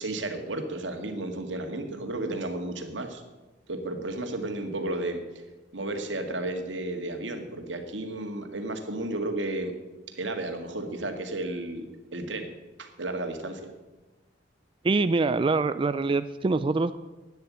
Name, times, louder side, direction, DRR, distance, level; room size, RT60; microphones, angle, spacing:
voice 1, 0.0-3.2 3.7-5.2 5.7-9.7 10.1-12.5 12.8-13.7, right 2 dB, 85° right, 5 dB, 2.0 m, -33 dB
voice 2, 14.8-17.0, right 3 dB, 30° right, 12 dB, 0.4 m, -24 dB
12.5 x 9.5 x 8.6 m, 1.1 s
head